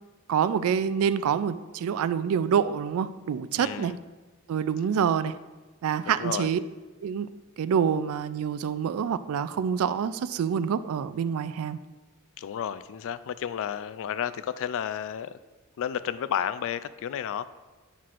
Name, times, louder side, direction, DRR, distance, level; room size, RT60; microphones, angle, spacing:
voice 1, 0.3-3.9 4.5-5.3 5.8-6.6 7.0-7.3 7.6-11.8, right 7 dB, 70° right, 14 dB, 0.3 m, -26 dB
voice 2, 3.6-4.0 6.1-6.5 12.4-15.3 15.8-17.5, left 9 dB, 65° left, 14 dB, 0.3 m, -32 dB
9.3 x 5.7 x 2.5 m, 1.2 s
head